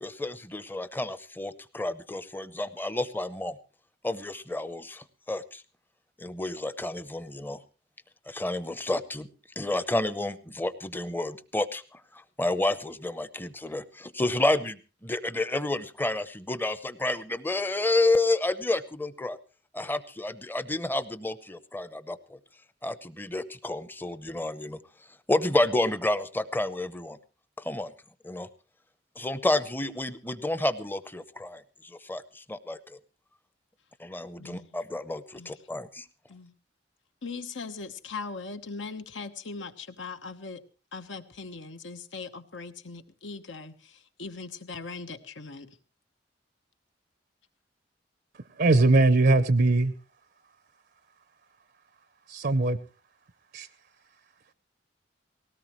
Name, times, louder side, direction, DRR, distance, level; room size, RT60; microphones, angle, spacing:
voice 1, 0.0-3.6 4.0-5.6 6.2-7.6 8.3-9.3 9.6-14.8 15.0-19.4 19.7-22.4 22.8-24.8 25.3-27.2 27.6-27.9 28.2-28.5 29.2-33.0 34.0-36.1, left 2 dB, 10° left, 14 dB, 0.7 m, -30 dB
voice 2, 34.4-34.8 35.4-35.6 36.3-36.5 37.2-40.6 40.9-45.8, left 4 dB, 75° left, 9 dB, 1.2 m, -40 dB
voice 3, 48.6-49.9 52.3-52.8 53.5-53.7, right 2 dB, 55° right, 13 dB, 0.6 m, -20 dB
19.5 x 17.5 x 3.1 m, 0.33 s
head